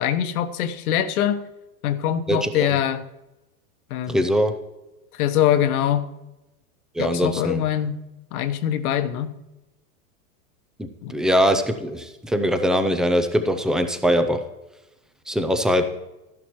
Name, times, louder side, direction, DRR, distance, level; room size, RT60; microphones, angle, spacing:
voice 1, 0.0-1.4 1.8-3.0 3.9-4.2 5.2-6.0 7.0-8.0 8.3-9.3 11.0-11.1, left 10 dB, 75° left, 10 dB, 1.1 m, -23 dB
voice 2, 2.3-2.7 4.1-4.6 6.9-7.6 10.8-14.4 15.3-15.9, equal, ahead, 8 dB, 0.3 m, -22 dB
13.5 x 11.0 x 3.0 m, 0.96 s
hypercardioid pair, 125°, 44 cm